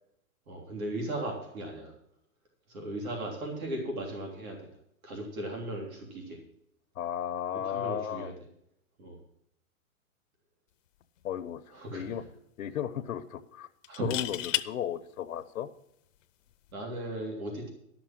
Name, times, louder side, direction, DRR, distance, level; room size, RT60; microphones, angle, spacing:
voice 1, 0.5-1.9 2.7-4.7 5.0-6.4 7.6-8.3 9.0-9.2 11.7-12.2 13.9-14.1 16.7-17.7, right 1 dB, 75° right, 0 dB, 3.5 m, -37 dB
voice 2, 6.9-8.3 11.2-11.6 11.9-12.2 12.6-13.7 14.0-15.7, left 10 dB, 90° left, 7 dB, 0.9 m, -34 dB
sound 1, 11.0-11.2 11.6-11.7 13.8-14.7 16.5-16.7, left 13 dB, 65° left, 0.7 m, -32 dB
12.5 x 6.2 x 7.5 m, 0.77 s
hypercardioid pair, 170°, 42 cm